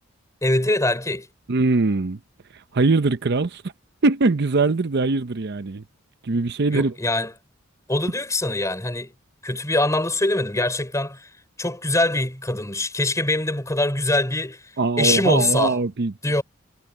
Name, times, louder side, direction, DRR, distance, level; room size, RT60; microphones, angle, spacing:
voice 1, 0.4-1.3 6.7-7.3 7.9-9.1 9.4-11.3 11.6-15.7 16.2-16.4, left 2 dB, 15° left, 5.1 m, -23 dB
voice 2, 1.5-2.2 2.5-3.6 4.0-5.8 6.2-7.0 14.8-16.1, right 3 dB, 55° right, 0.7 m, -21 dB
head